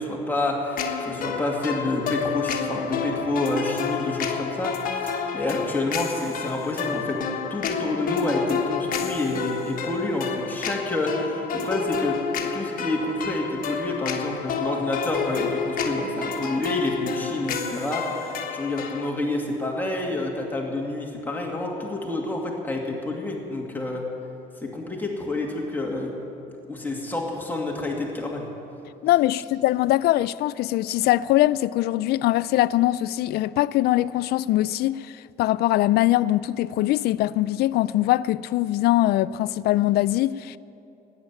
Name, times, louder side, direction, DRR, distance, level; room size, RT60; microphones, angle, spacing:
voice 1, 0.0-4.8 5.3-7.2 7.5-24.0 24.6-26.1 26.7-28.5, left 2 dB, 10° left, 2.5 m, -28 dB
sound 1, 0.8-19.1, left 6 dB, 55° left, 1.5 m, -30 dB
voice 2, 29.0-35.1 35.4-40.6, left 15 dB, 70° left, 0.4 m, -22 dB
13.0 x 9.9 x 8.9 m
cardioid pair, 110°, 17 cm